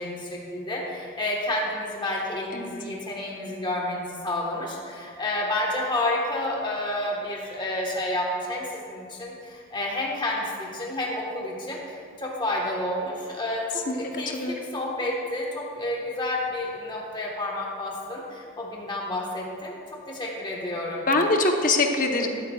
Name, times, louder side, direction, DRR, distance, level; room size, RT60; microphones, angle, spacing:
voice 1, 0.0-19.8 20.1-21.1, left 1 dB, 20° left, -3 dB, 1.3 m, -30 dB
voice 2, 21.1-22.3, left 2 dB, 40° left, 3 dB, 0.9 m, -23 dB
13.5 x 12.0 x 2.3 m, 2.3 s
head